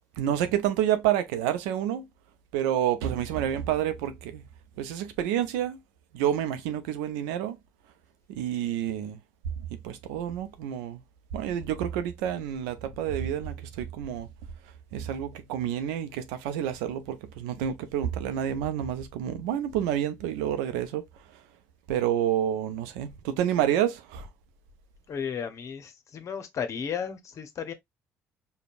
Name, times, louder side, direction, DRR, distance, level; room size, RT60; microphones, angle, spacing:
voice 1, 0.2-2.1 2.5-4.5 4.8-5.8 6.1-7.6 8.3-9.2 9.8-11.0 11.3-14.3 14.9-21.1 21.3-21.4 21.9-24.3, right 10 dB, 80° right, 0.5 m, -29 dB
voice 2, 25.1-27.7, left 7 dB, 50° left, 0.8 m, -34 dB
5.1 x 2.2 x 2.4 m
hypercardioid pair, 55°, 6 cm